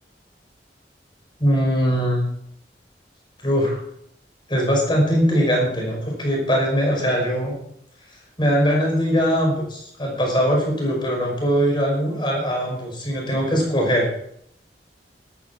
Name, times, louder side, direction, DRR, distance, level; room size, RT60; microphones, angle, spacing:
voice 1, 1.4-2.3 3.4-3.8 4.5-7.5 8.4-14.1, equal, 25° left, -1 dB, 5.7 m, -21 dB
13.5 x 13.5 x 4.5 m, 0.70 s
head